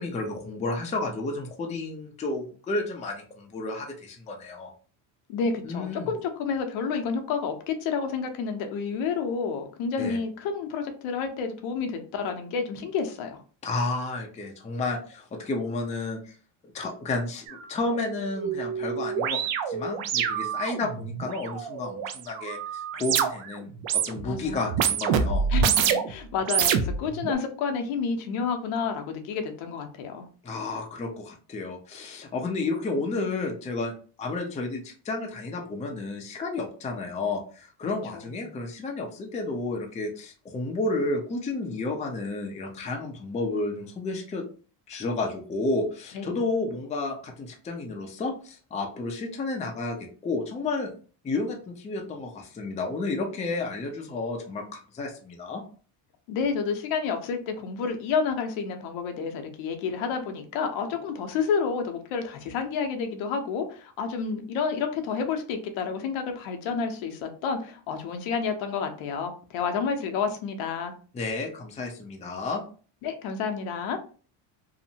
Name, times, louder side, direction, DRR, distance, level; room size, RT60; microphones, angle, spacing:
voice 1, 0.0-4.7 5.6-6.1 10.0-10.2 13.6-16.4 16.7-25.5 30.4-44.4 44.9-50.0 50.2-50.9 51.2-55.6 71.1-72.6, left 3 dB, 15° left, 2 dB, 0.4 m, -31 dB
voice 2, 5.3-13.4 21.0-21.1 24.2-24.8 25.5-30.3 38.1-38.6 46.1-46.3 56.3-70.9 73.0-74.0, left 5 dB, 70° left, 5 dB, 0.7 m, -30 dB
sound 1, 17.5-17.6 17.9-23.5 23.8-24.3 24.7-26.1 26.4-27.3, right 7 dB, 65° right, 0.5 m, -27 dB
2.8 x 2.1 x 2.6 m, 0.40 s
cardioid pair, 105°, 49 cm